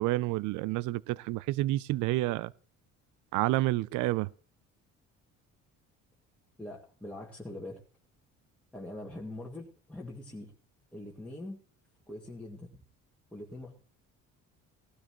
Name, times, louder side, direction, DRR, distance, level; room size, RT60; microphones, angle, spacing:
voice 1, 0.0-2.5 3.3-4.3, right 17 dB, 75° right, 0.5 m, -29 dB
voice 2, 6.6-7.8 8.7-10.5 10.9-11.6 12.1-12.8 13.3-13.7, left 1 dB, 5° left, 2.1 m, -43 dB
18.0 x 12.5 x 3.1 m
cardioid pair, 90°, 31 cm